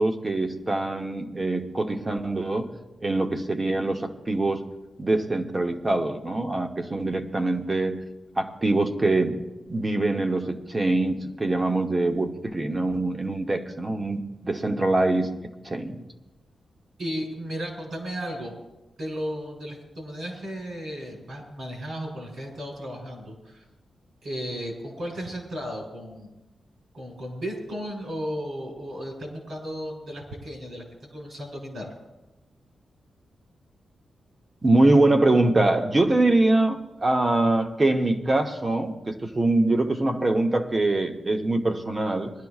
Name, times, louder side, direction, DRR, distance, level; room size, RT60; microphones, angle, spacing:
voice 1, 0.0-2.7 3.0-4.6 5.0-8.0 8.4-9.4 9.7-15.3 15.6-16.0 34.6-42.3, right 2 dB, 20° right, 5 dB, 0.9 m, -23 dB
voice 2, 17.0-18.5 19.0-23.6 24.2-26.3 26.9-31.9, equal, 60° right, -1 dB, 4.2 m, -34 dB
21.5 x 12.0 x 2.4 m, 1.0 s
wide cardioid pair, 155°, 0 cm